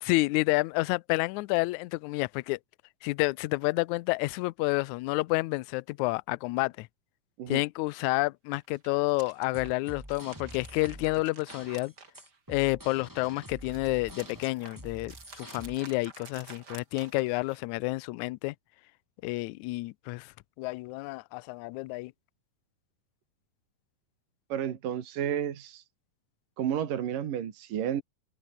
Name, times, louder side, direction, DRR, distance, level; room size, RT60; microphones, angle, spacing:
voice 1, 0.0-2.6 3.0-6.9 7.5-11.9 12.5-18.6 19.2-22.1, left 22 dB, 80° left, 1.7 m, -29 dB
sound 1, 8.6-12.7 13.1-17.7, right 4 dB, 30° right, 3.0 m, -51 dB
sound 2, 9.3-15.8, equal, 5° right, 6.5 m, -47 dB
voice 2, 24.5-25.8 26.6-28.0, right 9 dB, 80° right, 3.7 m, -31 dB
omnidirectional pair, 3.9 m